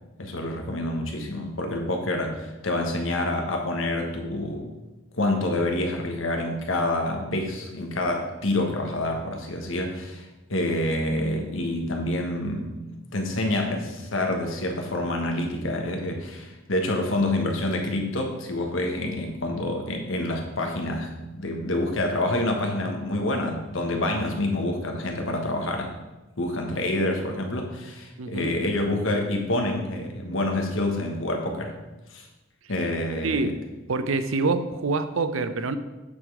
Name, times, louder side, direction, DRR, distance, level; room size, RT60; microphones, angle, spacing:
voice 1, 0.2-4.7 5.2-12.8 13.1-25.9 26.4-31.7 32.1-32.3 32.7-33.5, left 1 dB, 75° left, 3 dB, 1.4 m, -27 dB
voice 2, 28.2-28.5 33.2-33.6 33.9-35.8, right 3 dB, 90° right, 11 dB, 0.6 m, -26 dB
8.5 x 5.4 x 4.8 m, 1.1 s
head